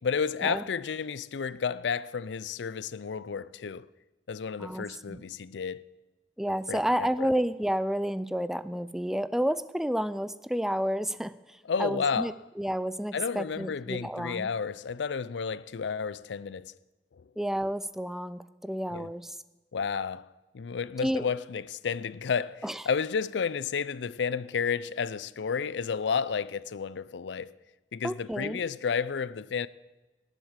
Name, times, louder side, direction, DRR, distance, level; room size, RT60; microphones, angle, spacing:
voice 1, 0.0-3.9 4.3-5.9 6.7-7.3 11.7-12.3 13.1-16.7 17.1-17.2 18.9-19.1 19.7-27.5 27.9-29.7, left 6 dB, 90° left, 0.5 m, -31 dB
voice 2, 4.6-5.2 6.4-14.5 17.4-19.4 21.0-21.2 22.6-22.8 28.0-28.6, equal, ahead, 0.4 m, -30 dB
18.5 x 8.2 x 7.3 m
head